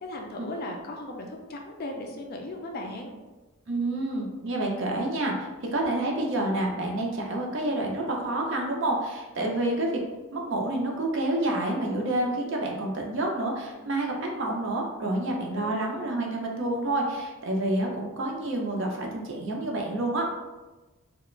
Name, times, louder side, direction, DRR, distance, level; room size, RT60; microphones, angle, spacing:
voice 1, 0.0-3.2 15.6-15.7, left 1 dB, 45° left, 2 dB, 0.3 m, -37 dB
voice 2, 3.7-10.0 10.3-20.2, right 1 dB, 55° right, 0 dB, 0.5 m, -28 dB
2.3 x 2.0 x 3.0 m, 1.2 s
head